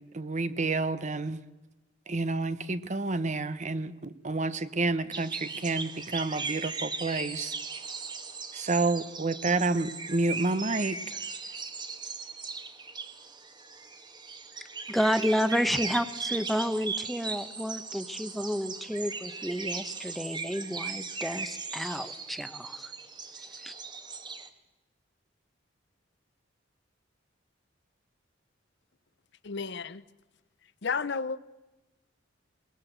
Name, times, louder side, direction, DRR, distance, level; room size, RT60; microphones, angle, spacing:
voice 1, 0.0-1.4 2.1-7.5 8.5-11.2, right 3 dB, 40° right, 0.9 m, -29 dB
sound 1, 5.1-24.5, right 4 dB, 25° right, 1.4 m, -38 dB
voice 2, 14.9-22.9 23.6-23.7, equal, ahead, 1.0 m, -30 dB
voice 3, 29.4-30.0 30.8-31.4, left 5 dB, 65° left, 0.8 m, -32 dB
21.5 x 19.5 x 8.0 m
head